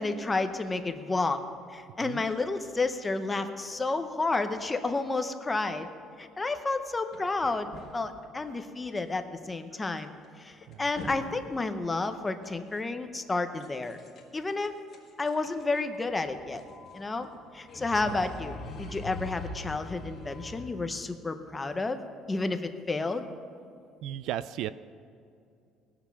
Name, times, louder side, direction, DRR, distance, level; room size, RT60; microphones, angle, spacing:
voice 1, 0.0-1.4 1.7-5.9 6.2-10.1 10.4-14.0 14.3-14.7 15.2-16.6 16.9-17.3 17.5-22.0 22.3-23.3, left 3 dB, 10° left, 8 dB, 0.6 m, -31 dB
sound 1, 7.1-8.2 8.9-9.2 9.4-9.5 10.0-10.1 10.5-11.3 11.5-11.6 12.0-12.5 13.6-14.4 14.6-20.7, left 2 dB, 30° left, 1.6 m, -43 dB
voice 2, 24.0-24.7, right 12 dB, 60° right, 16 dB, 0.3 m, -34 dB
19.5 x 7.1 x 5.8 m, 2.5 s
cardioid pair, 175°, 0 cm